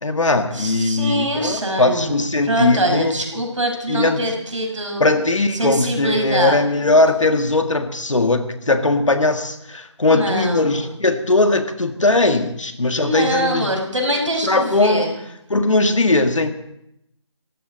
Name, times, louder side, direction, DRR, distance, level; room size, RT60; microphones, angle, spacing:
voice 1, 0.0-3.4 3.9-4.2 5.0-13.9 14.4-15.1 15.5-16.5, left 2 dB, 80° left, 7 dB, 1.8 m, -19 dB
voice 2, 0.5-5.1 5.5-6.6 10.0-10.9 13.0-15.1, right 1 dB, 80° right, 1 dB, 5.6 m, -23 dB
19.0 x 15.0 x 4.0 m, 0.80 s
figure-of-eight pair, 160°, 16 cm